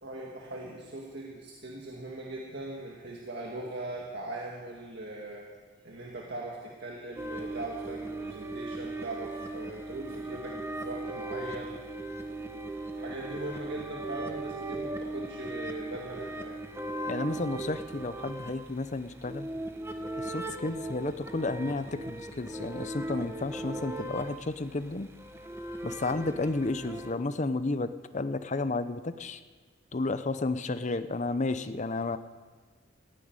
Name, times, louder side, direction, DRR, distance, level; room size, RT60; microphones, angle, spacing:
voice 1, 0.0-5.5 5.8-11.8 13.0-16.6, right 2 dB, 60° right, -2 dB, 1.9 m, -40 dB
sound 1, 7.2-27.1, right 2 dB, 15° right, 1.1 m, -38 dB
voice 2, 17.1-19.5 20.2-25.1 25.8-29.4 29.9-32.2, left 3 dB, 40° left, 12 dB, 0.7 m, -32 dB
15.0 x 10.0 x 9.5 m, 1.4 s
head